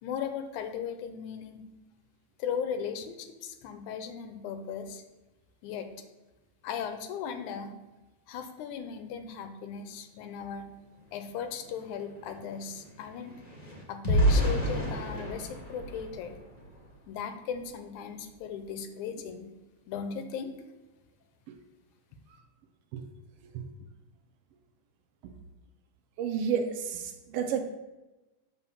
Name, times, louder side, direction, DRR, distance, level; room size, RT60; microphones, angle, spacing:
voice 1, 0.0-1.6 2.4-5.0 5.6-5.9 6.6-7.7 8.3-10.7 11.1-13.4 13.9-16.4 17.1-19.5 19.9-20.5, left 7 dB, 90° left, 8 dB, 2.2 m, -37 dB
sound 1, 11.1-11.2 11.5-17.0 17.5-17.7 18.0-18.3, equal, 25° left, 0.8 m, -31 dB
voice 2, 26.2-27.6, right 7 dB, 80° right, 6 dB, 1.3 m, -30 dB
7.2 x 4.2 x 6.8 m, 1.1 s
omnidirectional pair, 3.4 m